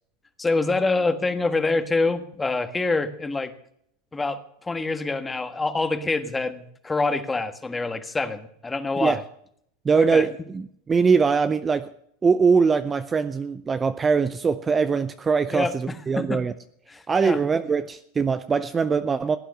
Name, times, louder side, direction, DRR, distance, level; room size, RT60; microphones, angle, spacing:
voice 1, 0.4-3.5 4.1-9.2 9.9-10.2 15.5-16.4 16.9-17.4, left 3 dB, 15° left, 10 dB, 1.4 m, -26 dB
voice 2, 9.8-11.9 12.2-16.5 17.1-19.4, right 5 dB, 20° right, 12 dB, 0.6 m, -22 dB
16.5 x 9.1 x 6.6 m, 0.69 s
supercardioid pair, 120°, 0 cm